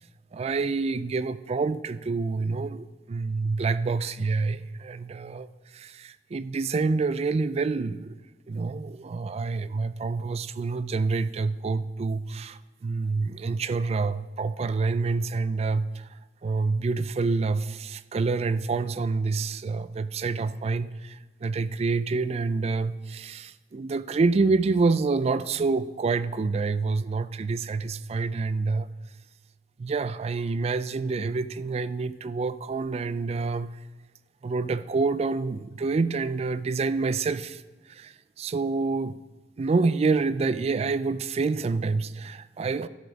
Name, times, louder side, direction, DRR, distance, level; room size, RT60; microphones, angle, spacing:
voice 1, 0.3-5.5 5.7-8.2 8.5-16.1 16.4-28.9 29.8-33.7 34.4-37.6 37.9-39.2 39.6-42.9, right 4 dB, 35° right, 15 dB, 0.3 m, -27 dB
12.0 x 6.1 x 5.2 m, 1.2 s
head